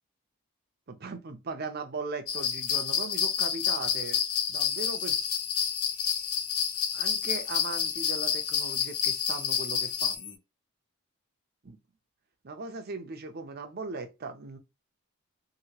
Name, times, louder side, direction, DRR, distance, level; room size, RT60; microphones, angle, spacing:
voice 1, 0.9-4.2 4.5-5.3 6.9-10.4 11.6-11.8 12.4-14.6, right 4 dB, 45° right, 0.5 m, -39 dB
sound 1, 2.3-10.2, left 7 dB, 80° left, 0.5 m, -29 dB
sound 2, 4.7-10.4, left 9 dB, 25° left, 0.6 m, -44 dB
2.9 x 2.7 x 2.8 m
head